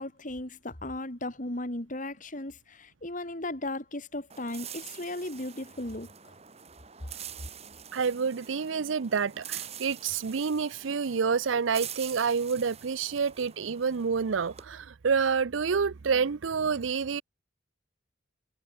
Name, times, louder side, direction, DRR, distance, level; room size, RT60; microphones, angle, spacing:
voice 1, 0.0-6.1, left 1 dB, 45° left, 3.2 m, -36 dB
sound 1, 4.3-14.6, right 9 dB, 35° right, 2.1 m, -45 dB
voice 2, 7.9-17.2, right 5 dB, 85° right, 0.6 m, -28 dB
head